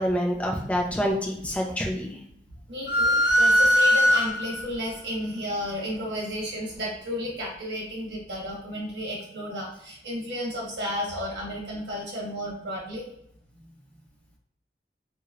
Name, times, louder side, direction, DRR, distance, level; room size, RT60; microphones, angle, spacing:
voice 1, 0.0-2.2, equal, 10° left, -1 dB, 0.5 m, -27 dB
voice 2, 2.7-13.1, equal, 80° right, -3 dB, 1.3 m, -33 dB
sound 1, 2.9-4.7, equal, 80° left, 1.0 m, -20 dB
3.0 x 3.0 x 2.4 m, 0.73 s
head